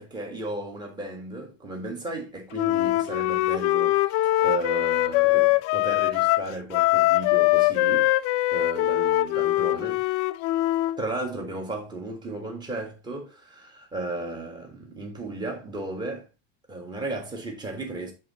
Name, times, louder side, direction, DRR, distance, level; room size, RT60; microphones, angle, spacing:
voice 1, 0.0-10.0 11.0-16.3 16.7-18.1, right 2 dB, 15° right, 1.5 m, -35 dB
Wind instrument woodwind instrument, 2.5-11.0, left 17 dB, 55° left, 0.4 m, -22 dB
7.5 x 3.6 x 4.1 m
cardioid pair, 160°, 31 cm